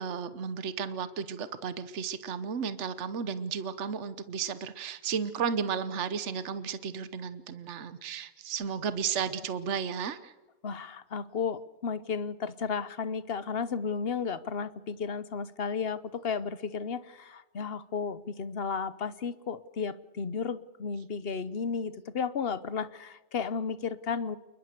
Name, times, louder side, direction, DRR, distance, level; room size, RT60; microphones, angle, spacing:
voice 1, 0.0-10.3, right 6 dB, 65° right, 13 dB, 1.3 m, -33 dB
voice 2, 10.6-24.4, left 5 dB, 50° left, 16 dB, 1.1 m, -33 dB
28.5 x 21.0 x 6.8 m, 1.2 s
omnidirectional pair, 1.3 m